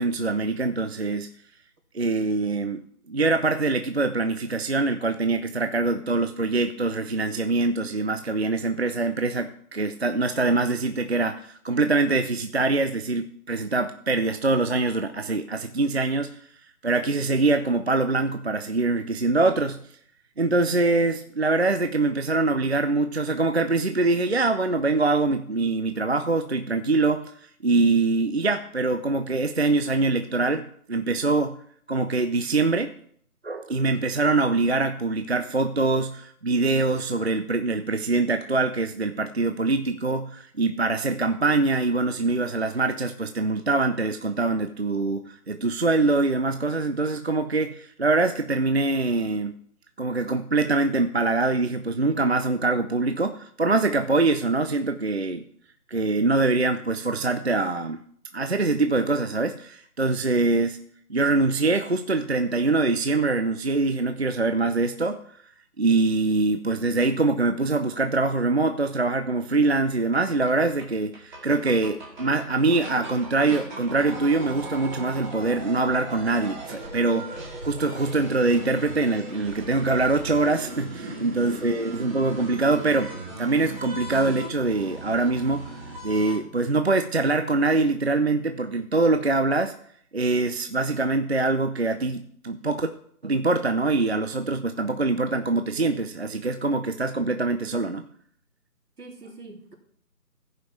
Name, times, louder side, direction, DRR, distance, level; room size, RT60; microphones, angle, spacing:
voice 1, 0.0-1.3 1.9-2.8 3.1-16.3 16.8-19.8 20.4-27.3 27.6-31.6 31.9-32.9 33.4-49.6 50.0-55.4 55.9-58.0 58.3-60.8 61.1-65.2 65.8-85.7 86.0-89.7 90.1-92.9 93.2-98.1, right 3 dB, 45° right, 8 dB, 0.4 m, -24 dB
sound 1, 70.1-70.2 70.5-70.6 70.8-70.9 71.1-86.4, right 1 dB, 30° right, 2.0 m, -38 dB
voice 2, 81.0-81.7 99.0-99.7, right 2 dB, 80° right, 0 dB, 3.4 m, -43 dB
15.5 x 5.5 x 4.5 m, 0.63 s
figure-of-eight pair, 165°, 46 cm